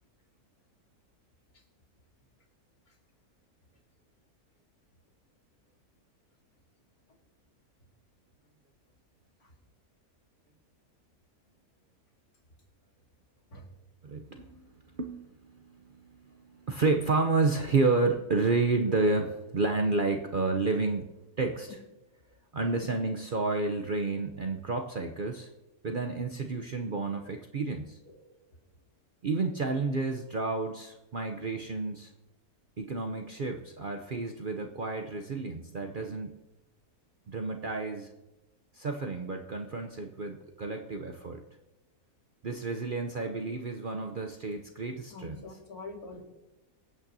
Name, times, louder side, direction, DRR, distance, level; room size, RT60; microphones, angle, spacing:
voice 1, 14.0-14.6 14.9-21.8 22.5-25.5 25.8-28.0 29.2-32.1 32.8-36.3 37.3-38.1 38.7-41.4 42.4-45.4, right 3 dB, 50° right, 4 dB, 0.7 m, -30 dB
voice 2, 45.1-46.2, left 3 dB, 75° left, 1 dB, 2.4 m, -44 dB
25.0 x 8.7 x 2.7 m, 1.0 s
omnidirectional pair, 1.6 m